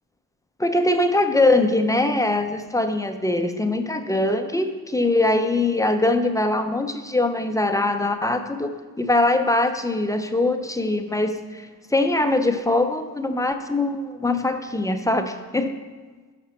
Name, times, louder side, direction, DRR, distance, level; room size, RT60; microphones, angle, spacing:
voice 1, 0.6-15.8, left 2 dB, 10° left, 6 dB, 0.5 m, -22 dB
11.5 x 5.9 x 4.2 m, 1.4 s
cardioid pair, 110°, 39 cm